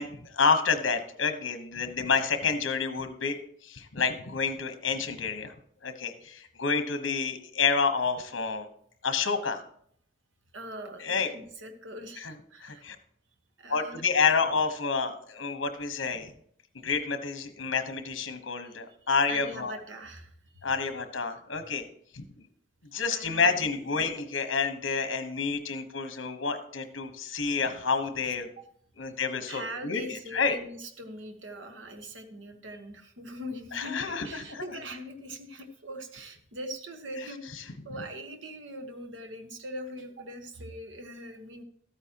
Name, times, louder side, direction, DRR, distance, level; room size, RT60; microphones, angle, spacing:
voice 1, 0.0-3.4 3.6-5.5 5.8-8.7 9.0-9.6 11.0-11.3 12.2-12.3 12.6-13.0 13.7-16.3 16.8-19.8 20.6-21.8 22.1-22.4 22.8-28.5 29.0-30.6 33.7-34.6, left 5 dB, 75° left, 8 dB, 1.1 m, -29 dB
voice 2, 10.5-12.9 13.6-14.0 18.6-18.7 19.3-20.7 23.1-23.8 28.2-28.7 29.4-41.6, equal, 70° right, 6 dB, 1.3 m, -42 dB
13.5 x 8.9 x 2.9 m, 0.65 s
head